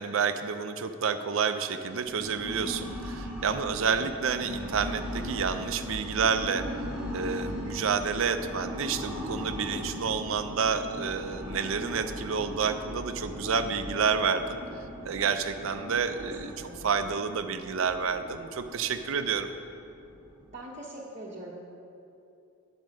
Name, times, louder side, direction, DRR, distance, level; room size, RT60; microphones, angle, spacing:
voice 1, 0.0-6.7 7.1-14.6 15.0-19.5, right 6 dB, 65° right, 9 dB, 0.5 m, -29 dB
sound 1, 1.9-20.6, equal, 5° right, 1.0 m, -39 dB
voice 2, 3.6-4.1 16.0-16.1 16.6-16.9 20.5-21.5, right 2 dB, 30° right, -5 dB, 0.9 m, -42 dB
9.0 x 5.3 x 6.3 m, 2.7 s
head